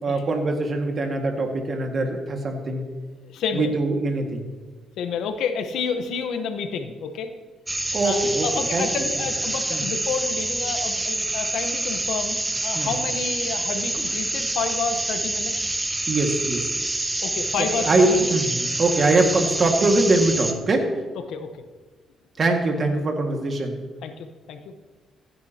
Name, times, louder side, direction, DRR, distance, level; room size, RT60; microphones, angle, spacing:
voice 1, 0.0-2.8 3.5-4.5 7.9-8.9 9.7-9.8 12.7-12.9 16.1-16.7 17.8-20.9 22.4-23.8, right 2 dB, 45° right, 3 dB, 1.9 m, -22 dB
voice 2, 3.3-3.7 5.0-7.3 8.0-12.4 12.6-15.7 17.2-18.3 21.3-21.6 24.0-24.7, left 6 dB, 80° left, 8 dB, 1.1 m, -29 dB
sound 1, 7.7-20.5, right 2 dB, 15° right, 0.8 m, -27 dB
15.5 x 9.6 x 2.9 m, 1.4 s
cardioid pair, 90°, 0 cm